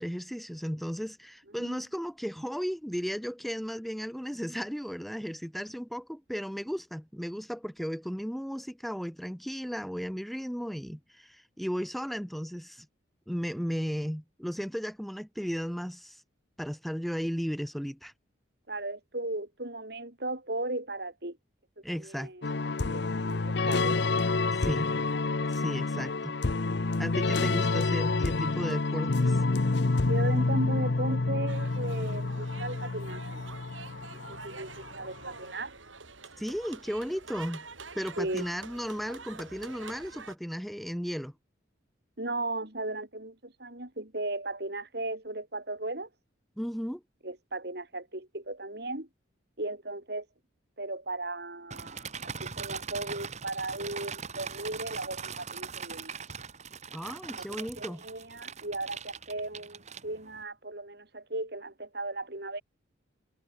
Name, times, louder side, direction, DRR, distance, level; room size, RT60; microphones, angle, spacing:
voice 1, 0.0-12.9 13.3-16.2 16.6-18.1 21.8-22.3 24.5-24.9 25.5-26.4 27.0-29.4 36.4-37.6 38.0-41.3 46.6-47.0 56.9-58.0, equal, ahead, 1.7 m, -35 dB
voice 2, 18.7-21.4 21.9-22.5 22.9-24.0 30.1-33.4 34.3-35.7 38.2-38.5 42.2-46.1 47.2-49.1 49.6-50.3 50.8-52.1 52.4-56.2 57.5-62.6, right 2 dB, 55° right, 3.6 m, -36 dB
sound 1, 22.4-35.0, left 3 dB, 60° left, 0.8 m, -28 dB
sound 2, 31.5-40.4, right 4 dB, 90° right, 7.7 m, -47 dB
sound 3, 51.7-60.4, right 6 dB, 35° right, 1.8 m, -41 dB
head